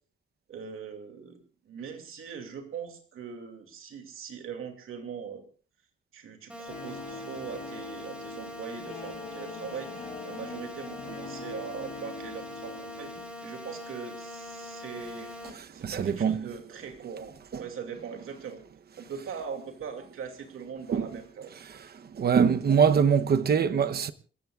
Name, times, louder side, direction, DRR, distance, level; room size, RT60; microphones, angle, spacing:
voice 1, 0.5-1.4 1.6-5.4 6.1-15.3 15.7-18.6 19.0-21.6, right 6 dB, 85° right, 2.7 m, -41 dB
sound 1, 6.5-15.5, left 2 dB, 5° right, 4.3 m, -42 dB
Guitar, 6.7-13.2, left 3 dB, 35° left, 6.3 m, -43 dB
voice 2, 15.8-16.5 17.5-17.6 20.9-21.1 22.1-24.1, right 7 dB, 50° right, 0.9 m, -23 dB
27.5 x 15.5 x 2.5 m
wide cardioid pair, 140°, 21 cm